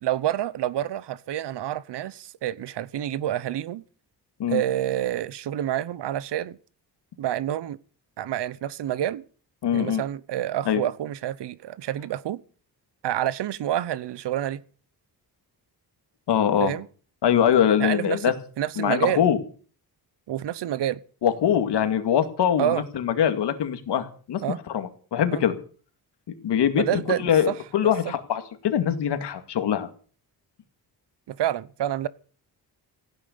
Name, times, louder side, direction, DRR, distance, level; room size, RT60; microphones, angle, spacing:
voice 1, 0.0-3.8 4.5-6.6 7.2-7.8 8.2-9.2 9.7-12.4 13.0-14.6 16.6-16.9 17.8-19.2 20.3-21.0 22.6-22.8 24.4-24.6 25.3-25.4 26.7-27.6 27.8-28.1 31.3-32.1, right 12 dB, 85° right, 1.0 m, -28 dB
voice 2, 9.6-10.0 10.7-10.8 16.3-16.7 17.2-18.3 18.8-19.4 21.2-24.4 24.7-25.5 26.3-29.9, left 9 dB, 90° left, 2.3 m, -23 dB
16.5 x 9.3 x 8.5 m
wide cardioid pair, 160°, 40 cm